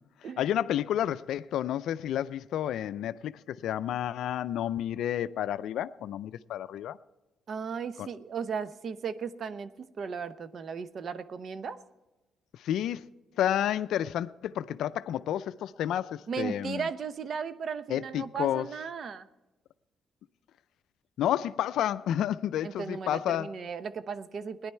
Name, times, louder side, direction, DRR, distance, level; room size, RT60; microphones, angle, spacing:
voice 1, 0.4-7.0 8.0-8.1 12.5-13.0 13.4-16.9 17.9-18.7 21.2-23.5, left 11 dB, 80° left, 0.4 m, -30 dB
voice 2, 7.5-11.8 16.3-19.3 22.6-24.7, right 6 dB, 55° right, 0.8 m, -36 dB
18.0 x 10.5 x 4.4 m
cardioid pair, 90°, 0 cm